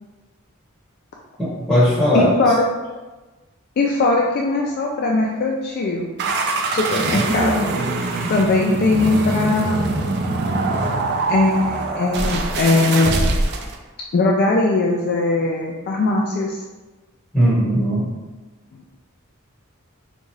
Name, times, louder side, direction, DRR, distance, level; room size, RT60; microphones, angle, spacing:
voice 1, 1.4-2.3 17.3-18.1, equal, ahead, -11 dB, 1.1 m, -18 dB
voice 2, 2.1-2.6 3.8-6.2 6.7-7.6 8.3-10.1 11.3-13.3 14.1-16.6, left 2 dB, 45° left, -1 dB, 0.3 m, -20 dB
sound 1, 6.2-13.8, right 2 dB, 50° right, 0.4 m, -23 dB
4.1 x 2.3 x 3.1 m, 1.2 s
head